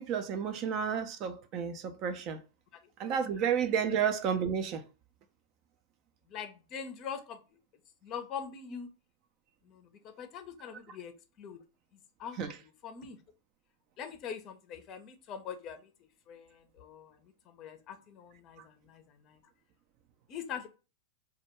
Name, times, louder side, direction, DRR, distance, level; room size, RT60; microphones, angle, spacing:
voice 1, 0.0-2.4 3.0-4.8 12.4-12.5, right 7 dB, 45° right, 0.4 m, -31 dB
voice 2, 6.3-7.4 8.0-8.9 9.6-11.6 12.2-13.2 14.0-15.9 16.3-19.4 20.3-20.7, left 7 dB, 40° left, 0.5 m, -43 dB
2.2 x 2.2 x 2.9 m
hypercardioid pair, 115°, 0 cm